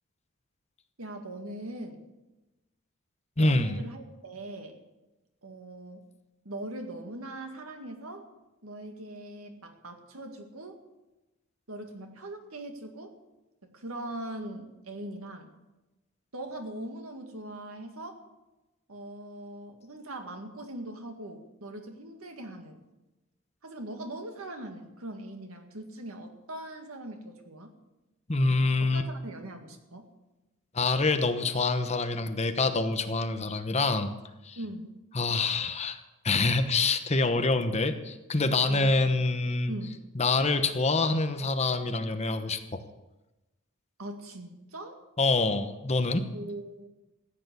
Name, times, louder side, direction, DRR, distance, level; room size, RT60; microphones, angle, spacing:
voice 1, 1.0-2.0 3.4-4.8 5.4-6.1 6.4-8.3 8.6-10.8 11.7-13.1 13.6-15.5 16.3-18.2 18.9-22.8 23.6-27.7 28.9-30.1 34.6-35.0 38.7-38.9 39.7-40.0 44.0-45.0 46.3-46.9, right 1 dB, 90° right, 5 dB, 2.0 m, -41 dB
voice 2, 3.4-3.8 28.3-29.0 30.7-34.1 34.4-34.6 35.1-36.0 36.2-39.7 40.2-42.8 45.2-46.3, left 3 dB, 30° left, 8 dB, 1.0 m, -26 dB
15.0 x 9.3 x 8.2 m, 1.0 s
head